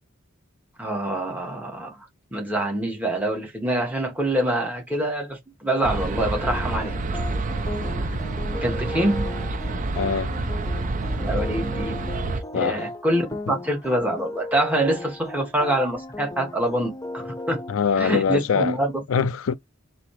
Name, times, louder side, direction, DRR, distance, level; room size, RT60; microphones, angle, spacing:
voice 1, 0.8-2.1 2.3-7.0 8.0-8.1 8.6-9.3 11.1-12.0 12.5-17.6 18.0-18.9 19.2-19.3, right 1 dB, 10° right, 1.3 m, -25 dB
sound 1, 5.8-12.4, right 2 dB, 40° right, 0.5 m, -28 dB
sound 2, 6.4-17.7, left 2 dB, 15° left, 0.5 m, -36 dB
voice 2, 9.9-10.3 12.5-12.9 17.7-18.8 19.1-19.6, left 6 dB, 70° left, 0.4 m, -23 dB
4.0 x 2.7 x 3.2 m
head